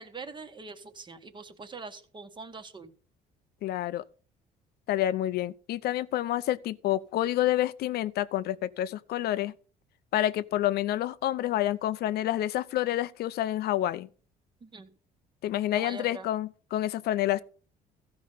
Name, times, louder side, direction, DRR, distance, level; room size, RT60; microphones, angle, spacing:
voice 1, 0.0-2.9 14.6-14.9 15.7-16.3, right 3 dB, 30° right, 1.2 m, -43 dB
voice 2, 3.6-4.0 4.9-9.5 10.1-14.1 15.4-17.4, left 13 dB, 70° left, 0.6 m, -28 dB
14.5 x 5.3 x 5.5 m
cardioid pair, 110°, 17 cm